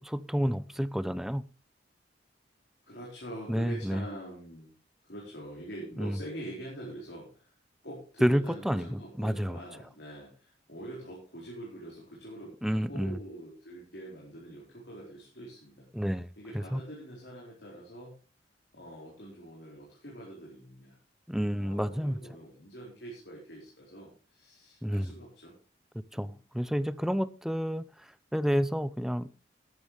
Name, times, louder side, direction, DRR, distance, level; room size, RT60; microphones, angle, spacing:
voice 1, 0.0-1.4 3.5-4.0 6.0-6.2 8.2-9.6 12.6-13.2 15.9-16.3 16.5-16.8 21.3-22.2 24.8-25.1 26.1-29.3, equal, ahead, 16 dB, 0.5 m, -30 dB
voice 2, 2.8-4.7 5.0-7.5 7.8-15.9 16.4-18.1 18.7-21.0 21.6-25.5 26.1-26.4, right 1 dB, 65° left, -4 dB, 4.2 m, -45 dB
12.5 x 12.0 x 3.3 m, 0.35 s
head